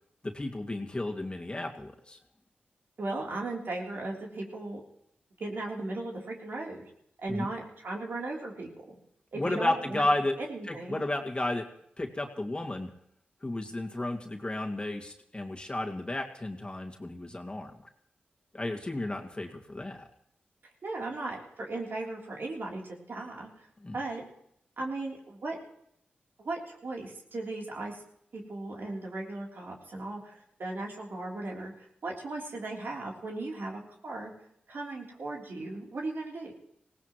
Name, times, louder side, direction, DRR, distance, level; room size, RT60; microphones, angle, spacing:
voice 1, 0.2-2.2 7.3-7.5 9.3-10.3 10.7-11.6 12.0-12.9 13.4-17.7 18.5-20.1 23.8-24.0, left 1 dB, 25° left, 2 dB, 2.2 m, -32 dB
voice 2, 3.0-4.8 5.4-6.8 7.2-9.0 9.3-10.1 10.4-11.0 20.8-23.7 23.9-24.2 24.8-25.6 26.4-28.0 28.3-34.3 34.7-36.5, right 2 dB, 65° right, -1 dB, 3.5 m, -37 dB
19.0 x 17.0 x 3.1 m, 0.72 s
cardioid pair, 45°, 4 cm